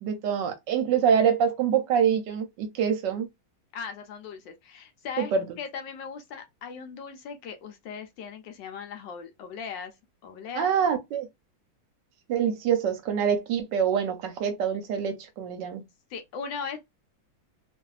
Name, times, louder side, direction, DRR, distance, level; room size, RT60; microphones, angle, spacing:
voice 1, 0.0-3.3 5.2-5.5 10.5-11.3 12.3-15.8, right 7 dB, 70° right, 1.1 m, -25 dB
voice 2, 3.7-9.9 10.2-10.7 16.1-16.8, left 6 dB, 75° left, 1.3 m, -38 dB
3.0 x 2.5 x 2.3 m
omnidirectional pair, 2.1 m